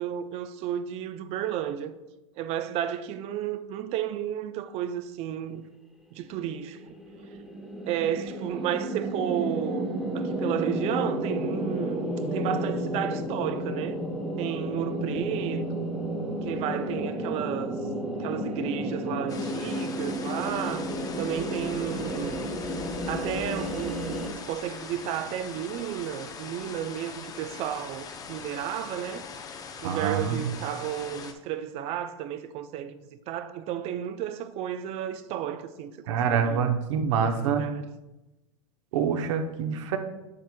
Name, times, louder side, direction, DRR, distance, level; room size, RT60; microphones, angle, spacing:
voice 1, 0.0-2.0 2.4-5.7 6.1-7.0 7.9-14.0 14.4-15.9 16.4-17.8 18.2-22.5 23.1-29.3 29.8-36.6 37.2-37.9, right 10 dB, 40° right, 0.5 m, -33 dB
sound 1, 6.5-24.3, right 1 dB, 5° right, 1.1 m, -32 dB
sound 2, 19.3-31.3, left 5 dB, 20° left, 0.6 m, -42 dB
voice 2, 29.8-30.5 36.1-37.6 38.9-40.0, right 7 dB, 65° right, 0.9 m, -26 dB
7.8 x 7.5 x 2.3 m
hypercardioid pair, 120°, 17 cm